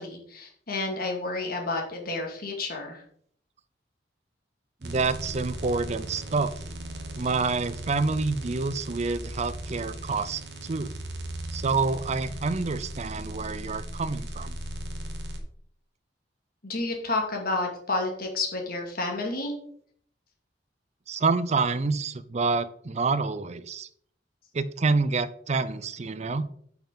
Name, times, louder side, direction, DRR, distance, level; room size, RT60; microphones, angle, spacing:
voice 1, 0.0-3.0 16.6-19.5, left 2 dB, 55° left, 2 dB, 2.2 m, -30 dB
voice 2, 4.8-6.5 7.1-10.9 11.5-14.5 21.1-23.9 24.5-26.4, right 4 dB, 40° right, 15 dB, 0.5 m, -27 dB
sound 1, 4.8-15.4, right 1 dB, 65° right, 1.4 m, -37 dB
8.4 x 5.9 x 3.9 m, 0.62 s
head